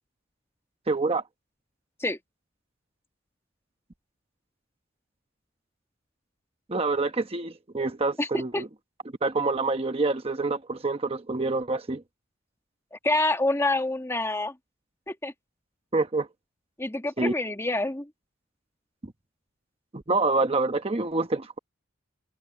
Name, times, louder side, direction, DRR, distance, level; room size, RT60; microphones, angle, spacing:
voice 1, 0.9-1.2 6.7-8.7 9.2-12.0 15.9-16.3 17.2-17.3 19.0-19.1 19.9-21.6, right 3 dB, 30° right, 1.0 m, -27 dB
voice 2, 12.9-14.5 15.1-15.3 16.8-18.1, left 2 dB, 15° left, 1.5 m, -27 dB
head